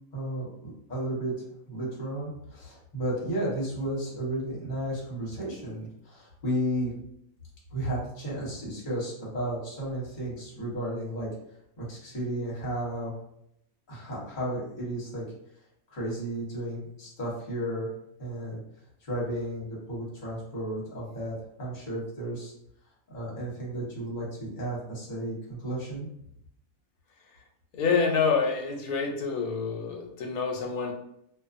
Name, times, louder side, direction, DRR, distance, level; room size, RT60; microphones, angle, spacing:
voice 1, 0.1-1.3 1.7-6.9 7.7-11.3 11.8-13.1 13.9-15.2 15.9-17.9 18.2-18.6 19.0-22.5 23.1-26.1, right 1 dB, 35° left, -5 dB, 1.1 m, -33 dB
voice 2, 27.7-30.9, left 5 dB, 75° left, 1 dB, 1.0 m, -27 dB
2.6 x 2.4 x 2.5 m, 0.75 s
omnidirectional pair, 1.6 m